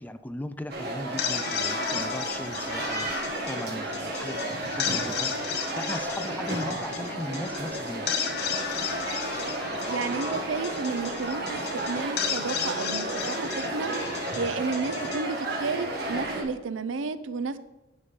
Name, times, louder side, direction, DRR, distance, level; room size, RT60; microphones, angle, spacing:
voice 1, 0.0-8.1, left 1 dB, 10° left, 10 dB, 0.3 m, -38 dB
sound 1, 0.7-16.4, right 1 dB, 55° right, 1.5 m, -33 dB
sound 2, 1.0-16.2, left 7 dB, 55° left, 0.7 m, -34 dB
voice 2, 9.9-11.6 11.8-13.9 14.3-17.6, right 4 dB, 85° right, 13 dB, 0.6 m, -32 dB
9.8 x 5.5 x 5.2 m, 0.99 s
head